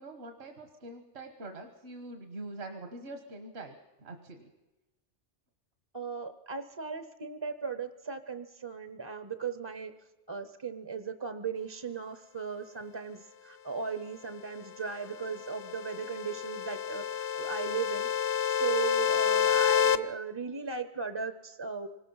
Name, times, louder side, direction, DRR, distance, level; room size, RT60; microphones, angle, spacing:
voice 1, 0.0-4.5, right 2 dB, 65° right, 5 dB, 1.6 m, -44 dB
voice 2, 5.9-9.9 10.3-21.9, right 6 dB, 25° right, 10 dB, 0.7 m, -37 dB
sound 1, 15.0-20.0, left 8 dB, 60° left, 1.0 m, -29 dB
25.5 x 19.0 x 5.5 m, 1.1 s
omnidirectional pair, 1.2 m